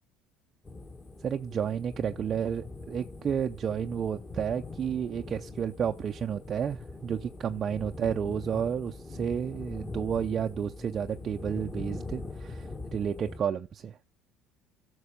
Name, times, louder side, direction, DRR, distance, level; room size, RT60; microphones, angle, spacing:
sound 1, 0.6-13.4, left 3 dB, 20° left, 1.6 m, -42 dB
voice 1, 1.2-14.0, right 8 dB, 40° right, 0.5 m, -31 dB
11.0 x 6.1 x 5.0 m
supercardioid pair, 100°, 0 cm